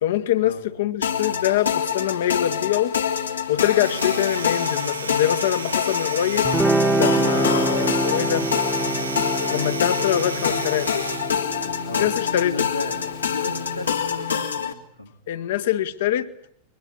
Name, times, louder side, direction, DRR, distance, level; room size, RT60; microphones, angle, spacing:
voice 1, 0.0-2.9 3.5-6.5 7.0-8.5 9.5-10.9 11.6-11.7 12.0-12.5 15.3-16.3, left 12 dB, 55° left, 1.3 m, -24 dB
sound 1, 1.0-14.7, left 7 dB, 75° left, 1.9 m, -26 dB
Domestic sounds home sounds, 3.7-11.5, right 4 dB, 80° right, 1.2 m, -34 dB
Guitar, 6.4-13.6, right 2 dB, 5° right, 1.3 m, -26 dB
voice 2, 12.4-13.0 13.2-15.1, left 2 dB, 90° left, 3.0 m, -34 dB
22.5 x 21.0 x 8.8 m
figure-of-eight pair, 90°, 0 cm